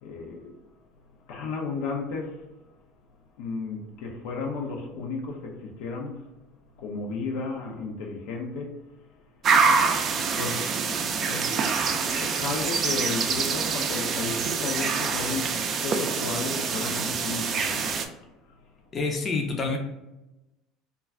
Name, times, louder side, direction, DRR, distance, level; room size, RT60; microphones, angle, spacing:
voice 1, 0.0-0.6 1.3-2.4 3.4-6.2 6.8-9.1 10.3-18.0 18.5-18.6, left 4 dB, 75° left, 0.5 m, -34 dB
sound 1, 9.4-18.1, right 5 dB, 45° right, 0.4 m, -26 dB
voice 2, 18.9-19.8, left 3 dB, 35° left, 0.5 m, -27 dB
2.2 x 2.2 x 3.5 m
supercardioid pair, 90°, 0 cm